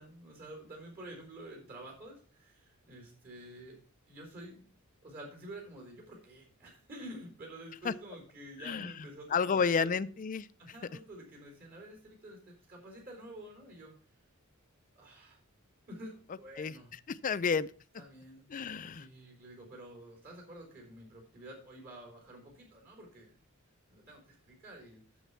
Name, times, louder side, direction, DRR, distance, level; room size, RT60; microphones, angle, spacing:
voice 1, 0.0-3.8 4.1-4.7 5.0-9.9 10.6-14.0 14.9-15.4 15.9-16.9 18.0-18.5 19.0-23.4 23.9-25.0, right 1 dB, 45° right, 0 dB, 4.1 m, -49 dB
voice 2, 8.6-10.5 16.6-16.7 17.1-17.7 18.5-19.1, left 5 dB, 40° left, 15 dB, 0.4 m, -31 dB
9.1 x 7.1 x 5.6 m, 0.41 s
head